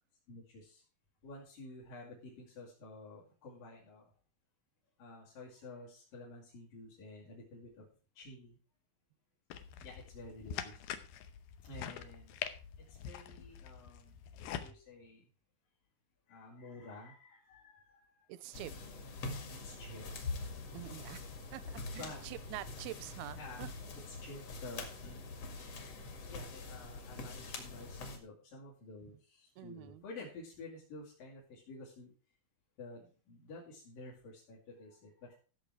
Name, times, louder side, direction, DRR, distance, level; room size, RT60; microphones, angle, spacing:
voice 1, 0.3-0.8 1.2-4.1 5.0-7.9 8.2-8.6 9.8-10.8 11.6-12.4 12.8-15.3 16.3-18.3 19.5-20.1 22.0-22.2 23.4-23.7 24.1-25.2 26.3-32.1 32.8-35.4, left 2 dB, 65° left, 4.1 m, -51 dB
sound 1, 9.5-14.7, left 9 dB, 80° left, 2.7 m, -45 dB
voice 2, 18.3-18.7 20.7-23.7 29.6-30.1, right 15 dB, 85° right, 2.6 m, -46 dB
sound 2, 18.5-28.2, left 3 dB, 45° left, 2.7 m, -44 dB
14.0 x 7.1 x 4.7 m
omnidirectional pair, 4.4 m